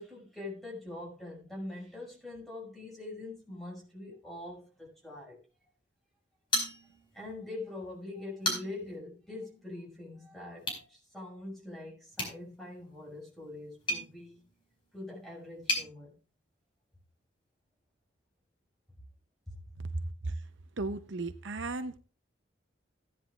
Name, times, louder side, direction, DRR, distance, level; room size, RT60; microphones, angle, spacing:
voice 1, 0.0-5.4 7.1-14.4 14.9-16.2, left 2 dB, ahead, 5.7 m, -43 dB
sound 1, 6.5-7.3 7.6-7.7 8.2-9.0 10.6-10.9 12.1-15.9, left 1 dB, 25° left, 4.7 m, -36 dB
voice 2, 20.8-22.0, right 3 dB, 70° right, 0.7 m, -35 dB
17.0 x 10.0 x 2.4 m
head